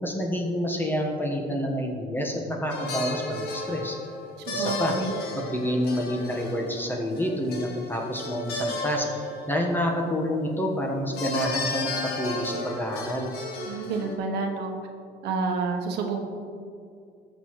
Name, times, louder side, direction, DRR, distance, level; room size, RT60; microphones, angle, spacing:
voice 1, 0.0-4.0 4.5-4.9 5.3-9.1 9.5-13.3, equal, 10° left, 0 dB, 1.3 m, -28 dB
sound 1, 2.7-10.0 11.1-14.1, left 2 dB, 70° left, 1.7 m, -33 dB
voice 2, 4.5-5.1 13.6-14.7 15.2-16.2, right 4 dB, 80° right, 4 dB, 1.1 m, -29 dB
14.0 x 6.6 x 3.2 m, 2.4 s
cardioid pair, 110°, 17 cm